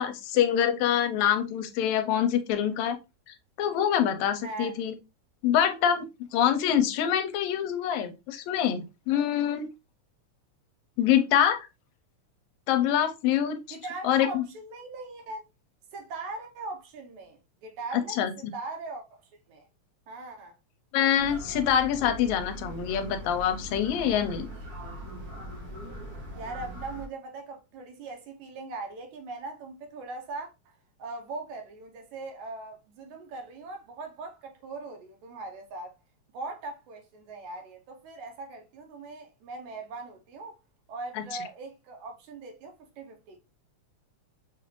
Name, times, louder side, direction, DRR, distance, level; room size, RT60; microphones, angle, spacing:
voice 1, 0.0-3.0 3.6-4.9 5.4-9.7 11.0-11.7 12.7-13.6 14.0-14.4 17.9-18.3 20.9-24.5 41.2-41.3, left 9 dB, 80° left, 1.9 m, -25 dB
voice 2, 4.4-4.7 13.7-15.4 15.9-19.2 19.5-19.7 20.1-20.6 26.4-35.9 36.3-40.6 40.9-43.4, right 3 dB, 80° right, 2.2 m, -40 dB
sound 1, 21.2-27.1, equal, 50° right, 1.1 m, -40 dB
5.9 x 2.5 x 3.0 m
omnidirectional pair, 3.4 m